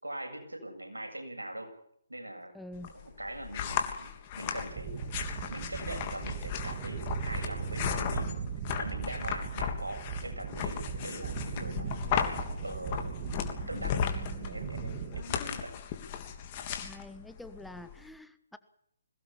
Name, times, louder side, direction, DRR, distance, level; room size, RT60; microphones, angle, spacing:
voice 1, 0.0-1.7 2.1-2.5 2.9-5.0 5.5-8.4 8.8-12.0 12.6-13.1 13.4-14.0 14.4-15.7, right 1 dB, 90° right, 4 dB, 7.6 m, -42 dB
voice 2, 2.5-2.9 13.7-14.6 16.8-18.6, left 1 dB, ahead, 10 dB, 1.2 m, -47 dB
sound 1, 2.7-18.1, left 7 dB, 30° left, 3.3 m, -36 dB
sound 2, 4.7-15.2, right 6 dB, 30° right, 2.4 m, -38 dB
22.5 x 18.0 x 7.2 m, 0.72 s
figure-of-eight pair, 140°, 0 cm